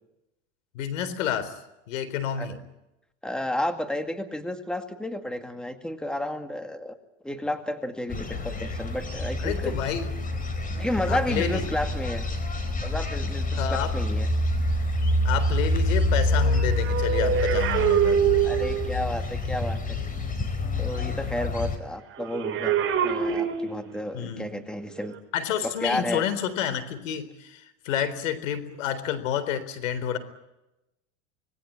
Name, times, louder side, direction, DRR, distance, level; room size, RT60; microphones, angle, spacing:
voice 1, 0.7-1.5 1.9-2.5 9.4-10.1 11.1-11.6 13.5-13.9 15.2-18.2 24.1-24.6 25.3-30.2, left 9 dB, 85° left, 13 dB, 4.0 m, -29 dB
voice 2, 3.2-7.0 7.2-9.8 10.7-12.3 12.8-14.3 18.4-20.0 20.8-22.8 23.0-25.1 25.6-26.2, left 1 dB, ahead, 7 dB, 2.0 m, -32 dB
sound 1, 8.1-21.8, left 2 dB, 20° left, 4.4 m, -27 dB
sound 2, 16.3-19.0 22.2-24.1 25.0-25.2, right 8 dB, 35° right, 5.7 m, -25 dB
25.5 x 20.5 x 8.8 m, 0.92 s
supercardioid pair, 125°, 38 cm